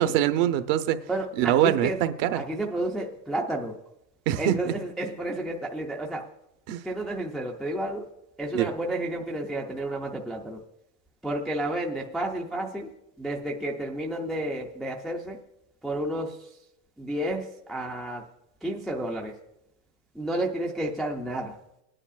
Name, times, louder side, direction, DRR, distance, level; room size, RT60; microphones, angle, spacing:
voice 1, 0.0-1.0 1.4-2.5 4.3-4.6 6.7-6.8 8.5-8.7, right 12 dB, 50° right, 10 dB, 0.9 m, -23 dB
voice 2, 1.1-2.0 2.4-3.8 4.4-6.3 6.8-8.0 8.4-10.6 11.2-12.9 13.2-15.4 15.8-16.5 17.0-18.2 18.6-19.4 20.1-21.6, right 1 dB, ahead, 0 dB, 0.4 m, -31 dB
19.0 x 10.0 x 2.4 m, 0.88 s
supercardioid pair, 130°, 49 cm